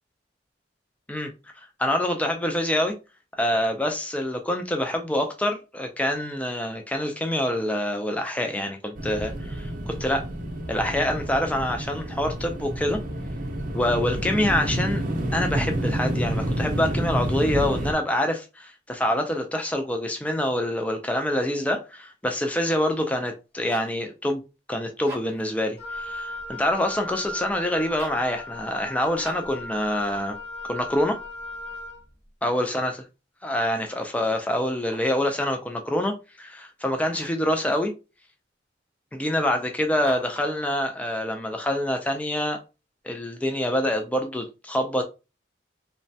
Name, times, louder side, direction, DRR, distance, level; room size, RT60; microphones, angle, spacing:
voice 1, 1.6-2.9 3.4-10.3 10.7-13.0 13.7-15.0 15.3-24.4 24.7-30.3 30.7-31.2 32.4-32.9 33.4-37.9 39.1-42.6 43.0-45.0, left 1 dB, 10° left, 0.3 m, -26 dB
sound 1, 8.9-17.9, right 1 dB, 50° right, 0.6 m, -29 dB
sound 2, 23.5-24.0 24.9-25.5 27.9-28.3 29.2-29.6 34.6-35.2 37.0-37.5 40.0-40.5, right 1 dB, 15° right, 0.9 m, -43 dB
Wind instrument woodwind instrument, 25.8-32.0, left 1 dB, 35° left, 0.8 m, -37 dB
3.1 x 2.1 x 2.6 m
head